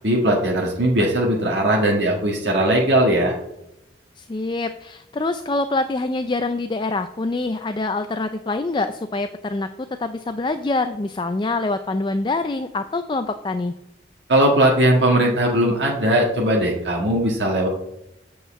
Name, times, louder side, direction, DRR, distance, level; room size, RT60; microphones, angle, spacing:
voice 1, 0.0-3.3 14.3-17.7, right 1 dB, 75° right, -2 dB, 1.7 m, -19 dB
voice 2, 4.2-9.7 10.0-13.7, left 2 dB, 25° left, 9 dB, 0.4 m, -25 dB
7.6 x 5.5 x 7.3 m, 0.87 s
head